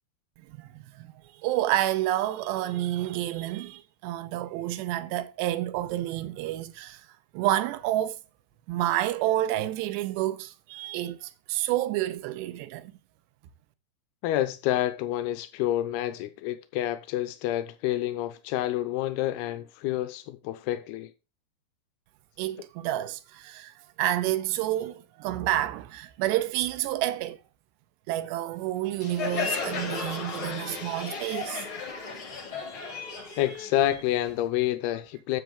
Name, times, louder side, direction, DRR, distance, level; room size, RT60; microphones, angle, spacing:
voice 1, 1.4-7.0 7.3-8.2 8.7-12.9 22.4-27.4 28.1-31.7 32.8-33.4, right 14 dB, 80° right, 2.7 m, -29 dB
voice 2, 14.2-21.1 33.4-35.4, left 13 dB, 90° left, 2.3 m, -28 dB
Crowd, 29.0-34.4, left 5 dB, 45° left, 1.8 m, -34 dB
12.5 x 8.2 x 2.3 m
omnidirectional pair, 5.4 m